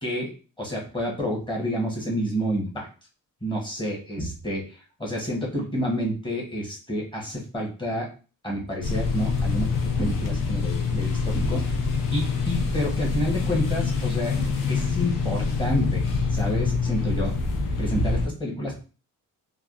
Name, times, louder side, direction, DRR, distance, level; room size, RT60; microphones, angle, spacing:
voice 1, 0.0-0.3 0.6-2.9 3.4-8.1 8.4-11.8 12.1-16.0 16.3-17.3 17.8-18.8, equal, 15° left, -2 dB, 0.9 m, -29 dB
sound 1, 8.8-18.3, left 4 dB, 70° left, 0.7 m, -25 dB
3.3 x 2.3 x 2.4 m, 0.35 s
cardioid pair, 130°, 34 cm